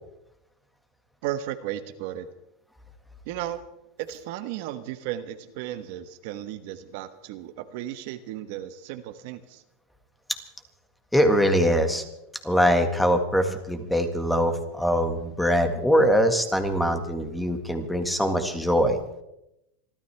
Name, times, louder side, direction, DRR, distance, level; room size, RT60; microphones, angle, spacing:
voice 1, 1.2-2.3 3.3-3.6 4.0-9.6, right 12 dB, 60° right, 9 dB, 1.2 m, -34 dB
voice 2, 11.1-12.0 12.4-19.0, equal, 5° left, 6 dB, 1.8 m, -22 dB
27.0 x 13.0 x 3.5 m, 0.82 s
supercardioid pair, 150°, 0 cm